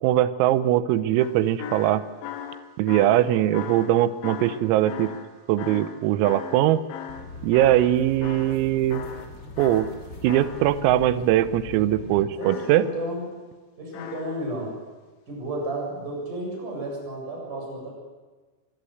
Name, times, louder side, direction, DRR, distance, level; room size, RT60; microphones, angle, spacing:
voice 1, 0.0-2.0 2.8-5.1 5.5-6.8 7.4-9.0 9.6-9.9 10.2-12.9, right 13 dB, 90° right, 13 dB, 3.6 m, -21 dB
sound 1, 1.2-8.0 8.2-8.6 8.9-11.0 12.4-13.2 13.9-14.6 15.6-15.7, left 8 dB, 70° left, 3.7 m, -38 dB
sound 2, 7.1-12.2, left 3 dB, 30° left, 2.4 m, -41 dB
voice 2, 12.4-13.3 13.8-14.8 15.3-17.9, right 1 dB, 40° right, -1 dB, 8.9 m, -32 dB
25.5 x 20.0 x 8.0 m, 1.3 s
omnidirectional pair, 5.9 m